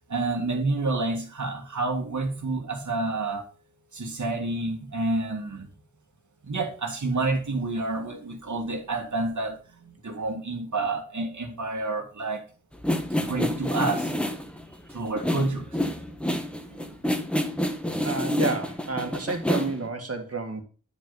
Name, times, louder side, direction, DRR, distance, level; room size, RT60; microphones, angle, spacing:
voice 1, 0.1-3.4 3.9-5.7 6.4-12.4 13.2-14.4 14.9-15.7 16.7-17.0, right 3 dB, 60° right, 1.9 m, -29 dB
sound 1, 12.7-19.9, left 1 dB, 5° left, 1.3 m, -28 dB
voice 2, 18.0-20.6, right 3 dB, 45° right, 1.9 m, -30 dB
9.2 x 5.3 x 3.9 m
cardioid pair, 40°, 33 cm